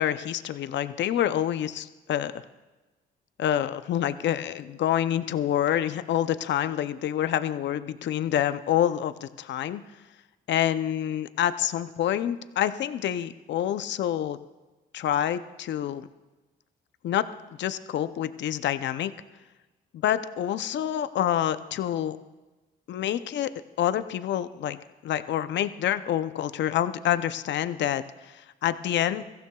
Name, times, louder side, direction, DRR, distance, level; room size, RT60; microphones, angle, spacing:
voice 1, 0.0-2.4 3.4-9.8 10.5-14.4 14.9-16.1 17.0-17.3 17.6-19.1 19.9-22.2 22.9-23.5 23.8-24.8 25.0-29.2, left 11 dB, 65° left, 12 dB, 0.6 m, -27 dB
22.5 x 15.0 x 2.3 m, 1.2 s
cardioid pair, 90°, 20 cm